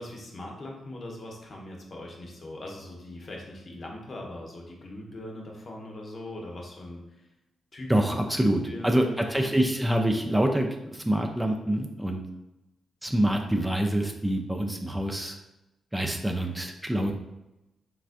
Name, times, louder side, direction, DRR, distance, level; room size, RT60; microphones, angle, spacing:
voice 1, 0.0-7.0 7.7-7.9 8.4-9.7, left 1 dB, 50° left, 0 dB, 0.7 m, -41 dB
voice 2, 7.9-12.2 13.0-15.4 15.9-17.1, right 1 dB, 10° right, 3 dB, 0.4 m, -26 dB
3.3 x 2.4 x 2.5 m, 0.94 s
supercardioid pair, 45°, 0 cm